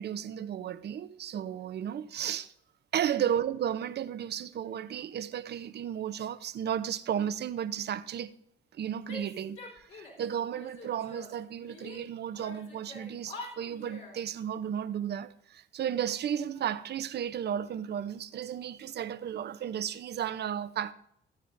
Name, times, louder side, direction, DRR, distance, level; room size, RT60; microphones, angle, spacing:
voice 1, 0.0-2.5 2.9-8.3 8.7-20.9, right 9 dB, 55° right, 0.6 m, -34 dB
Female speech woman speaking / Yell, 9.1-10.3 10.5-12.0 12.3-14.2, left 2 dB, 65° left, 3.8 m, -46 dB
16.0 x 9.4 x 2.6 m
cardioid pair, 90°, 20 cm